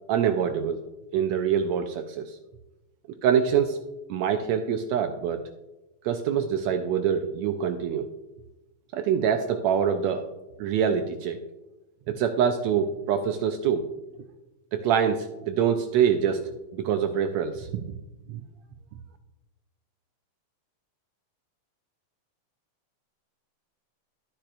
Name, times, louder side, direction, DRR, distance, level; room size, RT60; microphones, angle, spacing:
voice 1, 0.1-0.8 1.1-2.4 3.2-3.8 4.1-5.5 6.0-8.1 8.9-10.3 10.6-11.4 12.1-13.8 14.7-16.4 16.7-17.9 18.3-18.4, right 8 dB, 80° right, 7 dB, 1.6 m, -25 dB
12.5 x 8.8 x 2.5 m, 1.0 s
omnidirectional pair, 3.5 m